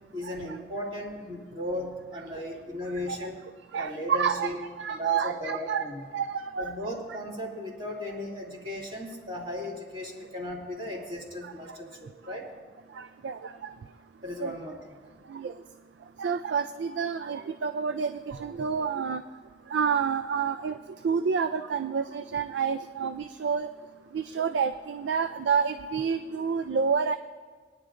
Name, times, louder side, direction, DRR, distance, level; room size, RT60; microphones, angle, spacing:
voice 1, 0.1-3.4 3.8-4.6 4.9-6.0 6.6-12.5 14.2-15.2, left 1 dB, 30° right, -4 dB, 2.6 m, -36 dB
voice 2, 3.7-4.5 4.8-5.8 6.1-6.8 11.4-11.5 12.9-13.7 14.4-14.6 15.3-15.5 16.2-19.2 19.7-20.8 21.0-23.7 24.1-27.2, right 6 dB, 90° right, 10 dB, 0.4 m, -29 dB
22.0 x 10.0 x 2.5 m, 1.5 s
head